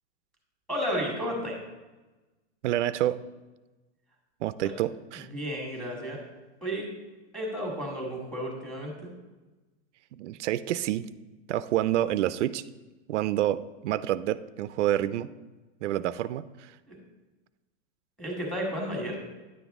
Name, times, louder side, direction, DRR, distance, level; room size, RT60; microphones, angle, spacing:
voice 1, 0.7-1.6 5.3-6.2 6.6-6.8 7.3-9.1 16.9-17.0 18.2-19.2, equal, ahead, 0 dB, 1.4 m, -32 dB
voice 2, 2.6-3.2 4.4-5.3 10.1-11.1 11.5-12.6 13.1-15.3 15.8-16.7, right 13 dB, 90° right, 15 dB, 0.5 m, -28 dB
9.9 x 7.2 x 3.5 m, 1.2 s
supercardioid pair, 165°, 35 cm